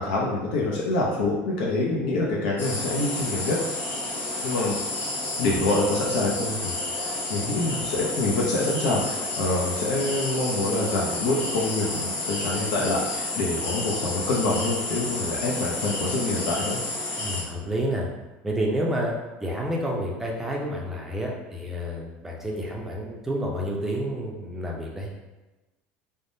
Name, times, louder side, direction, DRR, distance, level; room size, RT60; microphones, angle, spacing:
voice 1, 0.0-3.6 4.4-4.8 5.4-16.8, left 2 dB, 85° left, -4 dB, 0.5 m, -26 dB
sound 1, 2.6-17.4, left 2 dB, 40° left, 0.7 m, -30 dB
voice 2, 17.2-18.1 18.4-25.1, equal, 5° right, -2 dB, 0.4 m, -29 dB
3.3 x 2.1 x 2.6 m, 1.1 s
cardioid pair, 145°, 5 cm